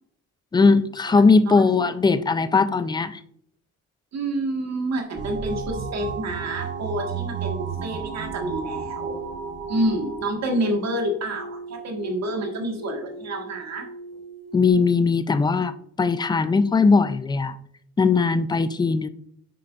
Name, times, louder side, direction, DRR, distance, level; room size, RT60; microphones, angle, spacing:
voice 1, 0.5-3.2 14.5-15.7 16.0-17.6 18.0-19.1, left 4 dB, 15° left, 13 dB, 0.4 m, -19 dB
voice 2, 1.5-1.8 4.1-9.2 9.7-13.9, right 1 dB, 60° right, 3 dB, 1.6 m, -28 dB
sound 1, 5.2-11.6, right 5 dB, 40° right, 0.8 m, -33 dB
sound 2, 8.1-14.7, right 3 dB, 55° left, 1.5 m, -40 dB
7.6 x 5.0 x 2.4 m, 0.69 s
cardioid pair, 90°, 30 cm